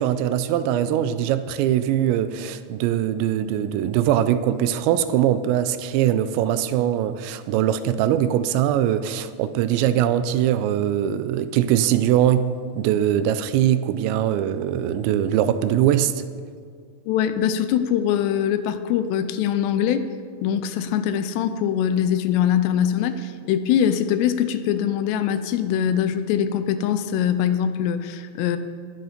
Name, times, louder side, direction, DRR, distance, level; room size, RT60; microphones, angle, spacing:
voice 1, 0.0-16.2, right 11 dB, 90° right, 2.9 m, -22 dB
voice 2, 17.1-20.1 20.4-28.6, left 9 dB, 80° left, 2.7 m, -22 dB
20.0 x 6.8 x 5.1 m
omnidirectional pair, 5.0 m